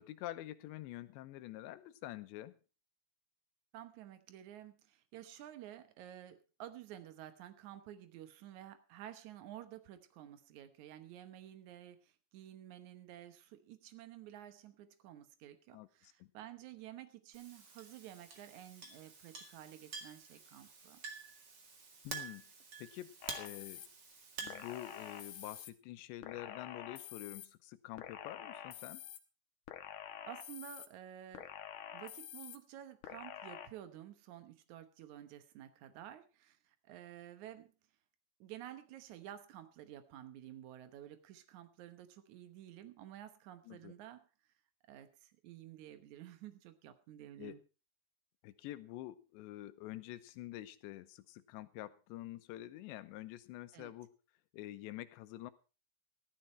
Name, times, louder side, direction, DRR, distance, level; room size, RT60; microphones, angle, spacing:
voice 1, 0.0-2.6 15.7-16.3 22.0-22.4 22.8-23.8 24.4-29.0 43.7-43.9 47.4-47.6 48.4-54.1 54.5-55.5, left 15 dB, 85° left, 12 dB, 3.1 m, -47 dB
voice 2, 3.7-21.0 30.3-31.5 31.9-37.7 38.4-44.2 44.9-47.6 53.7-53.9, right 12 dB, 75° right, 10 dB, 1.7 m, -52 dB
Chink clink, 17.3-25.6, right 5 dB, 45° right, 1.4 m, -49 dB
sound 1, 23.2-23.9 24.5-25.7 26.2-27.5 28.0-29.2 29.7-30.9 31.3-32.6 33.0-33.7, left 11 dB, 70° left, 2.0 m, -48 dB
14.5 x 13.0 x 4.4 m, 0.32 s
omnidirectional pair, 5.0 m